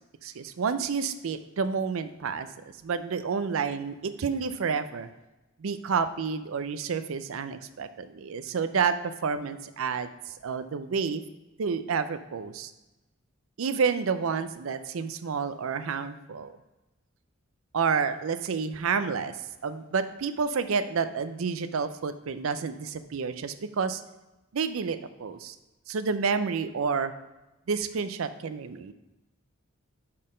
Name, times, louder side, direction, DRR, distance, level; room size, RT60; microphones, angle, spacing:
voice 1, 0.2-2.5 2.8-5.1 5.6-11.2 11.6-12.7 13.6-16.5 17.7-19.4 19.6-24.0 24.5-25.6 25.9-27.1 27.7-28.9, right 5 dB, 75° right, 11 dB, 0.4 m, -29 dB
5.6 x 4.3 x 5.0 m, 1.0 s
head